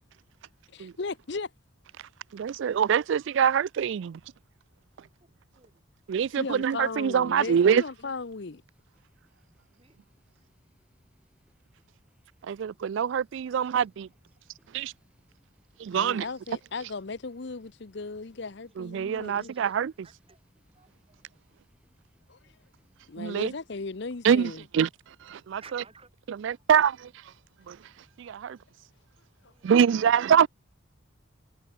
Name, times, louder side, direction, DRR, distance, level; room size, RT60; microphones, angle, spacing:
voice 1, 0.7-1.5 6.3-8.6 15.9-19.5 22.3-22.4 23.1-24.6 29.4-29.5, left 3 dB, 55° left, 0.7 m, -36 dB
voice 2, 2.3-4.2 6.1-7.8 12.4-14.1 14.7-14.9 15.8-16.2 18.8-19.9 23.2-23.5 24.2-24.9 25.2-25.8 26.3-27.1 27.7-27.8 28.2-28.6 29.6-30.5, right 8 dB, 60° right, 0.3 m, -24 dB
voice 3, 5.0-5.3 5.5-5.8 9.7-10.0 10.3-10.8 13.6-13.7 16.2-16.9 18.7-18.8 19.1-19.8 20.0-20.4 20.7-21.2 25.5-26.7 29.4-30.4, right 4 dB, 25° right, 4.3 m, -58 dB
sound 1, 6.4-23.9, equal, 5° right, 4.6 m, -70 dB
head